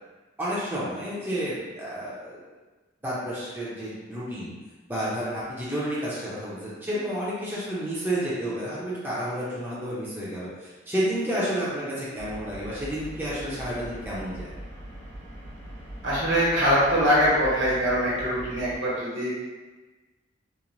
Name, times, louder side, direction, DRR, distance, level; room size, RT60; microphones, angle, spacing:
voice 1, 0.4-2.4 3.0-4.5 4.9-14.5, equal, 10° right, -9 dB, 0.5 m, -30 dB
sound 1, 12.1-18.8, right 1 dB, 80° left, 1.2 m, -41 dB
voice 2, 16.0-19.3, equal, 75° right, -7 dB, 1.1 m, -23 dB
3.0 x 2.1 x 2.5 m, 1.2 s
head